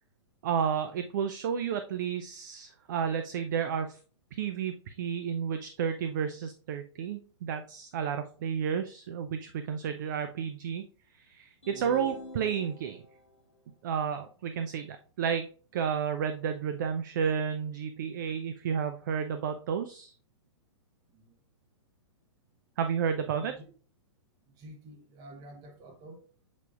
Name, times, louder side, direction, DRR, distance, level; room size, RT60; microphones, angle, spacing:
voice 1, 0.4-4.0 4.3-10.8 11.2-13.0 13.8-15.5 15.7-20.1 22.8-23.5, right 7 dB, 40° right, 0.4 m, -31 dB
sound 1, 11.6-13.2, left 3 dB, 85° left, 1.1 m, -46 dB
voice 2, 21.1-21.4 23.2-23.6 24.5-26.3, right 1 dB, 25° right, 0.9 m, -48 dB
6.5 x 3.4 x 2.4 m
figure-of-eight pair, 110°, 15 cm